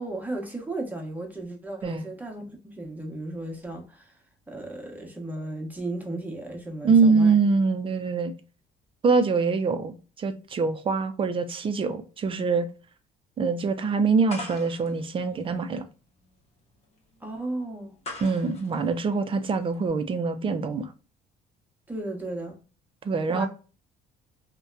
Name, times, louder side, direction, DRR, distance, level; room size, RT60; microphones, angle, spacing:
voice 1, 0.0-4.1 4.5-7.3 17.2-18.0 21.9-22.6 23.3-23.5, right 2 dB, 10° right, 0.8 m, -35 dB
voice 2, 6.8-8.3 9.0-12.7 13.4-15.9 18.2-20.9 23.0-23.5, right 4 dB, 30° right, 0.4 m, -24 dB
sound 1, 14.3-19.9, left 2 dB, 40° left, 0.9 m, -43 dB
2.7 x 2.2 x 2.3 m
cardioid pair, 110°, 17 cm